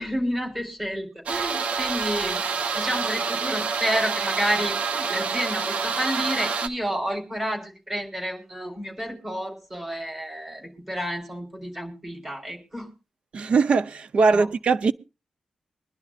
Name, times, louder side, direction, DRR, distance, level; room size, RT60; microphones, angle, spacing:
voice 1, 0.0-12.9 14.3-14.5, equal, 15° right, 3.9 m, -30 dB
sound 1, 1.3-6.7, right 5 dB, 85° right, 0.9 m, -27 dB
voice 2, 13.3-14.9, right 4 dB, 55° right, 0.6 m, -21 dB
23.5 x 11.0 x 2.4 m
wide cardioid pair, 160°, 2 cm